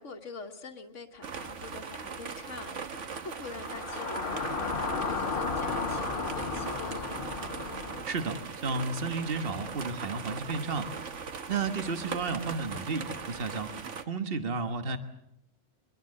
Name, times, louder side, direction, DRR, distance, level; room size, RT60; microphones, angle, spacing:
voice 1, 0.0-7.3, left 4 dB, 75° left, 4 dB, 1.7 m, -44 dB
sound 1, 1.2-14.0, right 5 dB, 75° right, 1.6 m, -40 dB
sound 2, 3.6-8.0, left 4 dB, 50° left, 1.5 m, -33 dB
voice 2, 8.1-10.9 11.5-13.7 14.1-15.0, right 4 dB, 50° right, 8 dB, 1.7 m, -32 dB
24.5 x 21.5 x 7.7 m, 0.81 s
omnidirectional pair, 1.3 m